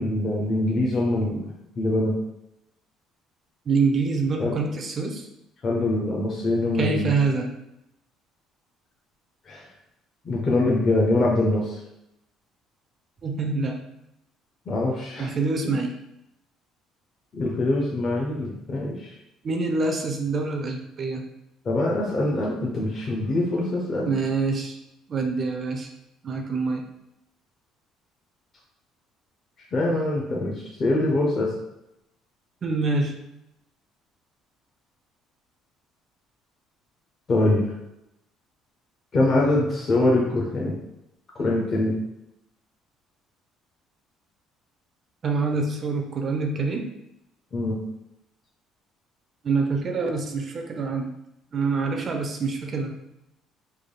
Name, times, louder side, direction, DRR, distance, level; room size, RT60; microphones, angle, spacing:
voice 1, 0.0-2.1 4.4-4.6 5.6-7.1 9.5-9.6 10.3-11.8 14.7-15.3 15.6-15.7 17.3-19.1 21.7-24.1 29.7-30.5 30.8-31.5 37.3-37.7 39.1-40.7 41.4-42.0 47.5-47.8, left 2 dB, 30° left, -3 dB, 0.5 m, -23 dB
voice 2, 3.7-5.3 6.8-7.5 13.2-13.8 15.2-15.9 19.4-21.2 24.0-24.8 25.1-25.9 26.2-26.8 32.6-33.2 45.2-46.9 49.4-51.1 51.5-52.9, right 4 dB, 30° right, 3 dB, 0.4 m, -25 dB
3.3 x 2.2 x 3.7 m, 0.85 s
cardioid pair, 165°, 0 cm